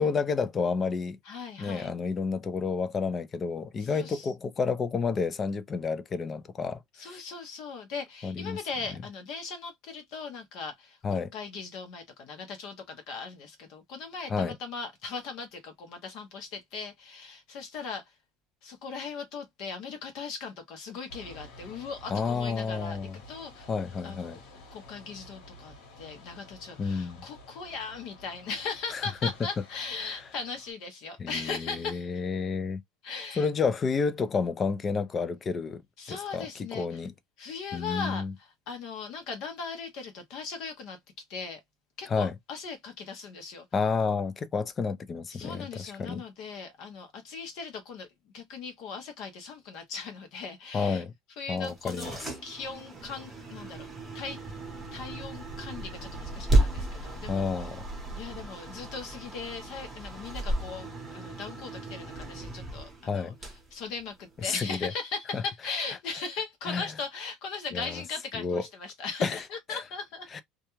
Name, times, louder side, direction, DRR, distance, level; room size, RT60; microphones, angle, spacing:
voice 1, 0.0-1.2 1.6-7.2 8.2-8.6 11.0-11.3 14.3-14.6 22.1-23.2 23.7-24.4 26.8-27.2 28.9-29.3 30.0-30.2 31.2-32.8 33.4-35.8 36.1-37.1 37.7-38.3 42.1-42.3 43.7-46.2 50.7-51.1 51.5-52.2 57.3-57.8 63.1-63.4 64.4-64.9 65.3-65.4 66.7-66.9 67.7-68.0 68.3-68.6 69.2-69.4 69.7-69.8 70.3-70.4, left 5 dB, 20° left, 0.3 m, -30 dB
voice 2, 1.2-1.9 3.8-4.3 6.9-18.0 18.6-23.0 23.3-23.7 24.0-24.4 24.7-32.1 33.0-33.5 36.0-37.0 37.4-41.0 41.3-41.6 42.0-43.7 45.3-48.1 48.3-51.0 51.4-53.9 54.1-54.4 54.9-57.5 58.2-63.3 63.7-70.3, left 5 dB, 55° left, 0.7 m, -39 dB
sound 1, 21.1-30.7, left 1 dB, 85° left, 1.2 m, -51 dB
sound 2, 51.6-64.5, right 2 dB, 10° right, 0.9 m, -34 dB
sound 3, 52.9-58.5, right 3 dB, 40° right, 0.4 m, -44 dB
2.3 x 2.2 x 3.0 m
cardioid pair, 160°, 0 cm